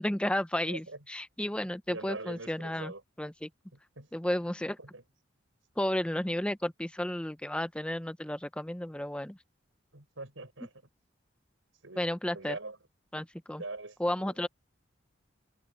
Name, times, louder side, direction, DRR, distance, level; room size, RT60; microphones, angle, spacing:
voice 1, 0.0-2.9 3.2-3.5 4.1-4.8 5.8-9.4 12.0-12.6 13.1-13.6 14.0-14.5, left 1 dB, 5° left, 0.5 m, -32 dB
voice 2, 0.6-1.0 1.9-3.0 4.0-4.1 4.8-5.0 9.9-10.9 11.8-12.8 13.6-14.3, right 2 dB, 80° right, 5.8 m, -43 dB
head